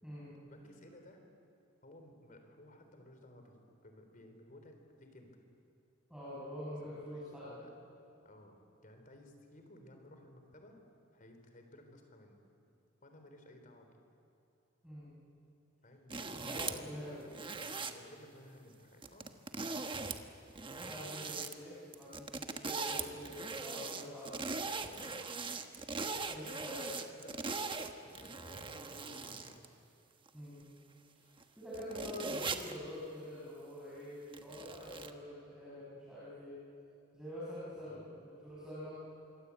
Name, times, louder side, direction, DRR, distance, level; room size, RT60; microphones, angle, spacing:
voice 1, 0.5-1.2 1.8-5.4 6.8-7.7 8.2-8.5 8.8-10.8 11.1-12.4 13.0-14.0 15.8-19.4 24.8-25.1 26.1-26.6 26.9-27.5 27.8-29.6 37.8-38.1, left 1 dB, 45° left, 5 dB, 3.8 m, -57 dB
voice 2, 6.1-7.5 14.8-15.1 16.4-17.3 20.8-24.9 26.3-26.9 30.3-30.6 31.1-31.2 31.6-36.6 37.1-38.1 38.4-38.9, left 1 dB, 5° right, -9 dB, 6.5 m, -46 dB
sound 1, 16.1-16.9 17.3-17.9 19.0-20.2 20.5-21.5 21.9-29.7 30.3-30.4 31.4-31.5 31.7-32.8 34.3-35.1, right 4 dB, 25° right, 1.2 m, -40 dB
26.0 x 23.5 x 8.4 m, 2.7 s
head